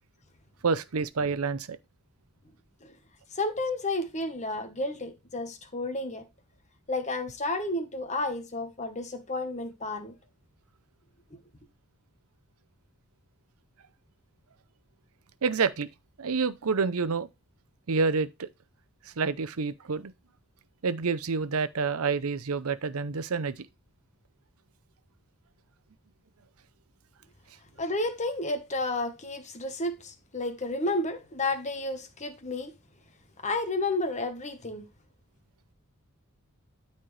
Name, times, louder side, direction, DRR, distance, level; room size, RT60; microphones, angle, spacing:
voice 1, 0.6-1.8 15.4-15.9 16.2-17.3 17.9-18.5 19.2-20.1 20.8-23.5, right 4 dB, 75° right, 0.7 m, -28 dB
voice 2, 3.3-6.2 6.9-10.1 27.8-32.7 33.4-34.8, left 2 dB, 35° left, 1.2 m, -31 dB
12.5 x 4.3 x 3.3 m
head